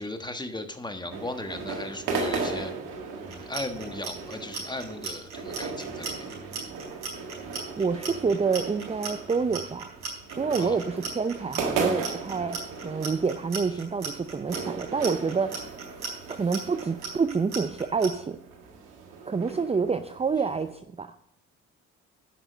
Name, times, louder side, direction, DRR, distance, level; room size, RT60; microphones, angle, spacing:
voice 1, 0.0-2.7 3.3-6.3 10.6-10.8, left 2 dB, 15° left, 7 dB, 1.4 m, -36 dB
sound 1, 1.1-20.7, right 4 dB, 80° right, 1.7 m, -37 dB
Clock, 3.3-18.1, right 5 dB, 65° right, 4.6 m, -36 dB
voice 2, 7.8-9.9 10.4-15.8 16.4-18.4 19.3-21.2, right 5 dB, 20° right, 10 dB, 0.6 m, -28 dB
10.0 x 6.0 x 6.6 m, 0.75 s
hypercardioid pair, 55°, 33 cm